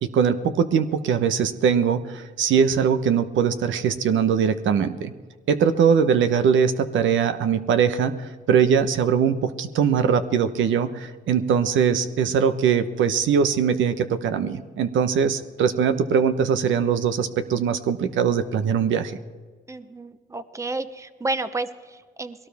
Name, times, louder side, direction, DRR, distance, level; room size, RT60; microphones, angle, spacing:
voice 1, 0.0-5.1 5.5-19.2, right 7 dB, 75° right, 10 dB, 1.0 m, -21 dB
voice 2, 19.7-22.5, right 2 dB, 15° right, 12 dB, 0.9 m, -31 dB
21.0 x 17.5 x 3.5 m, 1.4 s
cardioid pair, 90°, 20 cm